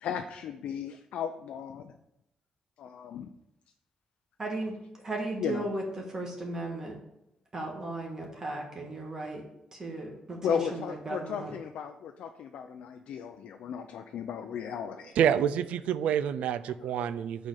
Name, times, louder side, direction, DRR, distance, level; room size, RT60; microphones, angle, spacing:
voice 1, 0.0-1.9 2.8-3.3 5.4-5.7 10.4-15.1 16.8-17.1, left 8 dB, 75° left, 5 dB, 0.5 m, -35 dB
voice 2, 4.4-4.8 5.0-5.8 6.1-7.0 7.5-9.4 9.7-11.5, right 2 dB, 25° right, -1 dB, 1.5 m, -36 dB
voice 3, 15.2-17.5, right 9 dB, 85° right, 14 dB, 0.4 m, -27 dB
6.2 x 4.3 x 6.5 m, 0.82 s
cardioid pair, 155°, 2 cm